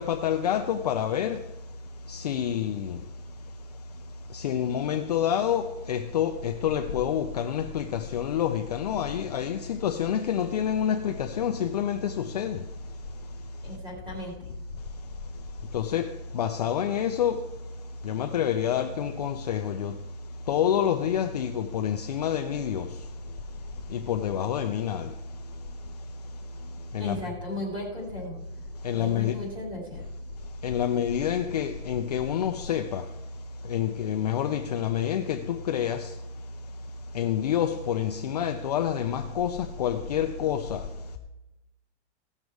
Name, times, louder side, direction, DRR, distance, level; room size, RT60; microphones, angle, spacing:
voice 1, 0.0-1.4 2.1-3.0 4.3-12.6 15.7-16.1 16.3-17.4 18.0-19.9 20.5-22.9 23.9-25.1 26.9-27.2 28.8-29.4 30.6-33.0 33.7-36.1 37.1-40.8, left 9 dB, 35° left, 0.4 m, -27 dB
voice 2, 13.6-14.5 27.0-28.4 28.9-30.0, left 1 dB, 15° right, 3.1 m, -36 dB
17.0 x 6.4 x 4.7 m
supercardioid pair, 175°, 35 cm